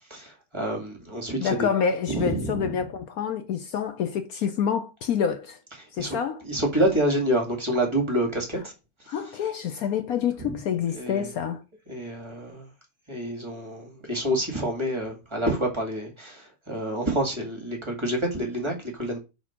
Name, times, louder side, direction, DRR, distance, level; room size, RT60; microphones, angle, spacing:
voice 1, 0.1-1.7 2.1-2.7 6.0-6.2 6.4-8.7 10.2-10.6 10.9-11.3 11.9-12.7 13.1-19.2, right 1 dB, 15° right, 2.1 m, -28 dB
voice 2, 1.4-5.6 5.9-6.4 9.1-11.6, left 7 dB, 65° left, 1.0 m, -27 dB
4.9 x 4.2 x 5.9 m
omnidirectional pair, 1.8 m